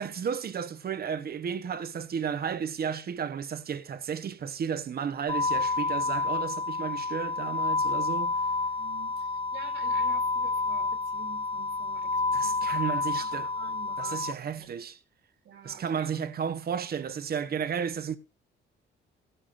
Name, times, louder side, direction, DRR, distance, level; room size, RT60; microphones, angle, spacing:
voice 1, 0.0-8.3 12.3-13.5 14.0-15.0 15.6-18.2, right 7 dB, 50° right, 1.1 m, -33 dB
sound 1, 5.3-14.3, left 3 dB, 25° left, 0.7 m, -29 dB
voice 2, 8.8-14.2 14.6-14.7 15.4-16.1, right 7 dB, 75° right, 3.0 m, -48 dB
16.0 x 12.5 x 2.6 m
cardioid pair, 90°, 20 cm